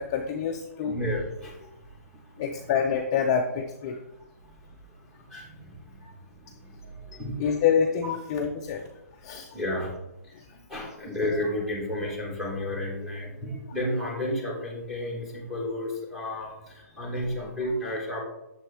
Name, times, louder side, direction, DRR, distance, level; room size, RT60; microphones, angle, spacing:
voice 1, 0.0-0.9 2.4-4.0 7.4-8.8 9.2-9.5, left 7 dB, 20° left, 3 dB, 0.3 m, -26 dB
voice 2, 0.8-1.7 2.4-2.7 5.3-6.1 6.6-7.6 9.5-9.9 10.7-18.2, left 1 dB, 5° right, -4 dB, 1.1 m, -32 dB
6.7 x 4.3 x 3.2 m, 0.93 s
hypercardioid pair, 165°, 9 cm